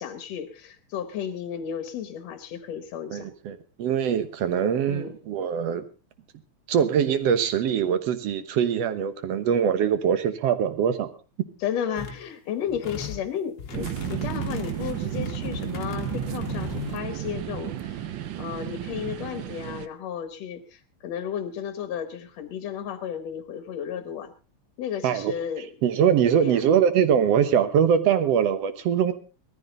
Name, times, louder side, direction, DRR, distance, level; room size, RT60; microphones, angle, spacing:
voice 1, 0.0-3.3 4.9-5.1 11.6-24.3 24.8-25.7 26.4-26.6, left 8 dB, 70° left, 10 dB, 2.0 m, -33 dB
voice 2, 3.1-5.8 6.7-11.1 25.0-25.3 25.8-29.1, right 8 dB, 65° right, 11 dB, 2.1 m, -23 dB
sound 1, 12.0-12.2 12.7-13.2 13.6-16.9, left 6 dB, 40° left, 1.6 m, -37 dB
sound 2, 13.7-19.9, right 11 dB, 85° right, 1.0 m, -32 dB
18.5 x 14.0 x 3.9 m, 0.33 s
omnidirectional pair, 3.3 m